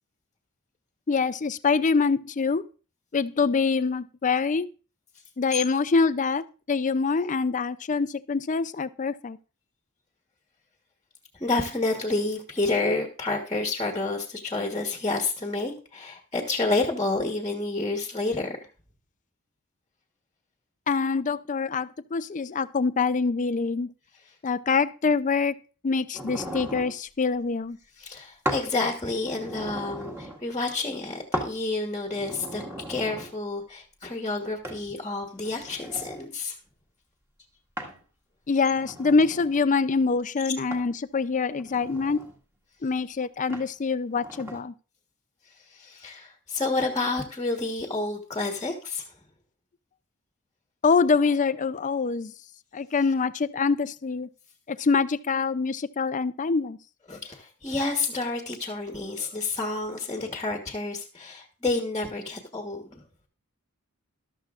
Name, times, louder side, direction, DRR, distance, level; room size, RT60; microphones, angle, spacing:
voice 1, 1.1-2.6 3.1-4.7 5.4-9.4 20.9-23.9 24.4-25.5 25.8-27.8 38.5-42.2 42.8-44.7 50.8-52.3 52.7-54.3 54.7-56.8, left 4 dB, 35° left, 15 dB, 0.5 m, -25 dB
voice 2, 11.4-18.6 28.0-32.6 32.9-36.5 45.7-49.0 57.1-63.0, left 3 dB, 15° left, 3 dB, 1.3 m, -29 dB
sound 1, 26.1-27.0 28.4-28.7 29.1-30.4 31.3-31.6 32.1-33.3 34.6-34.8 35.4-36.3 37.8-38.0 38.6-39.6 40.7-40.9 41.6-42.4 43.5-43.7 44.1-44.6, equal, 10° right, 1.7 m, -36 dB
13.5 x 12.5 x 2.5 m, 0.35 s
head